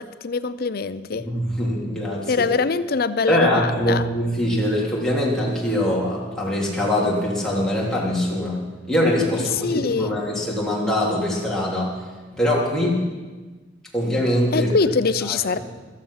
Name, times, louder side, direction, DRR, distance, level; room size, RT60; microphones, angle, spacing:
voice 1, 0.0-1.3 2.3-4.1 9.6-10.2 14.5-15.6, left 4 dB, 55° left, 14 dB, 0.5 m, -23 dB
voice 2, 1.1-2.5 3.3-8.6 8.9-11.9 12.3-13.0 13.9-14.7 15.3-15.6, left 1 dB, 5° left, -5 dB, 3.1 m, -23 dB
15.0 x 13.0 x 5.7 m, 1.3 s
head